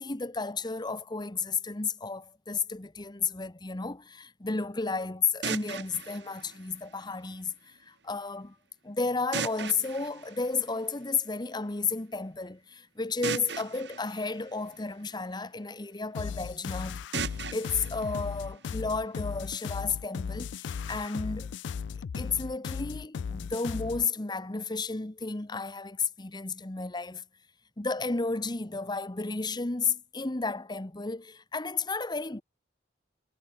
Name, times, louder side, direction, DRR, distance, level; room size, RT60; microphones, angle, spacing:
voice 1, 0.0-8.6 8.8-17.0 17.5-21.6 22.1-27.2 27.8-32.4, left 4 dB, 25° left, 1.0 m, -32 dB
sound 1, 5.4-7.4 9.3-11.3 13.2-15.4 17.1-19.2, right 5 dB, 70° right, 2.5 m, -39 dB
sound 2, 16.1-24.1, left 6 dB, 75° left, 0.4 m, -36 dB
head